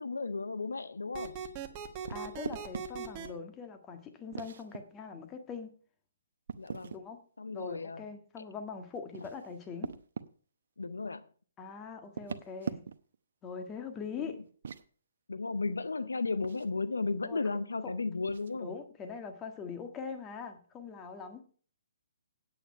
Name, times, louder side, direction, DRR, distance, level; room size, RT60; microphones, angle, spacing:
voice 1, 0.0-1.3 6.6-6.9 7.4-8.0 10.8-11.2 14.2-14.3 15.3-18.7, left 3 dB, 85° left, 0.6 m, -34 dB
sound 1, 1.1-3.3, right 7 dB, 35° right, 1.4 m, -40 dB
voice 2, 2.1-5.7 6.9-7.2 7.5-9.9 11.6-12.8 13.4-14.4 17.2-17.4 18.6-21.4, left 5 dB, 20° left, 1.5 m, -42 dB
sound 2, 2.1-2.9 4.3-4.8 6.5-7.0 8.9-10.3 12.0-13.1 14.5-14.9 16.4-16.7 18.3-18.5, right 6 dB, 65° right, 0.7 m, -41 dB
8.9 x 8.6 x 5.5 m
hypercardioid pair, 135°, 0 cm